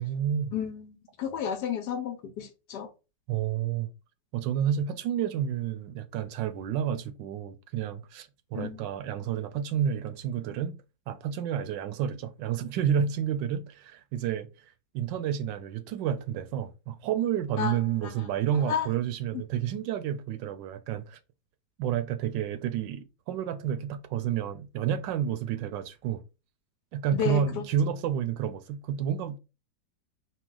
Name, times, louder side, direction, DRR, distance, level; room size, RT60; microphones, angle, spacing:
voice 1, 0.0-0.5 3.3-3.9 4.3-10.8 11.1-14.5 14.9-21.2 21.8-26.2 26.9-29.4, right 9 dB, 80° right, 1.2 m, -30 dB
voice 2, 0.5-2.9 8.5-8.8 17.6-17.8 18.0-18.3 18.7-18.9 19.3-19.4 27.1-27.6, left 8 dB, 70° left, 1.2 m, -32 dB
4.3 x 2.2 x 3.7 m
omnidirectional pair, 2.0 m